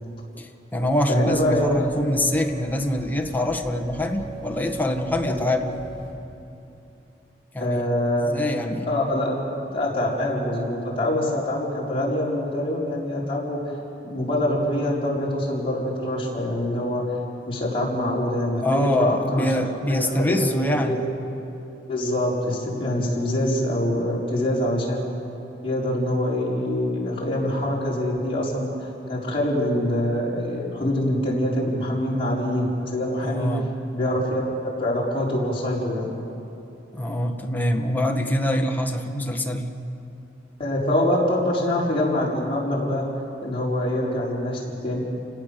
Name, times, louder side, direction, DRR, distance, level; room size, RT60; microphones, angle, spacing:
voice 1, 0.4-5.8 7.5-7.8 8.2-8.9 18.6-21.0 33.2-33.7 36.9-39.7, left 1 dB, 10° left, 3 dB, 1.5 m, -24 dB
sound 1, 0.8-6.1, right 3 dB, 90° right, 6.3 m, -38 dB
voice 2, 1.1-1.7 5.3-5.4 7.6-8.3 8.8-9.4 9.7-13.6 14.0-17.0 17.5-19.6 19.9-21.0 21.9-25.0 25.6-33.5 33.9-36.1 40.6-43.0 43.4-45.0, left 1 dB, 30° left, -5 dB, 5.1 m, -25 dB
30.0 x 17.0 x 6.9 m, 2.8 s
head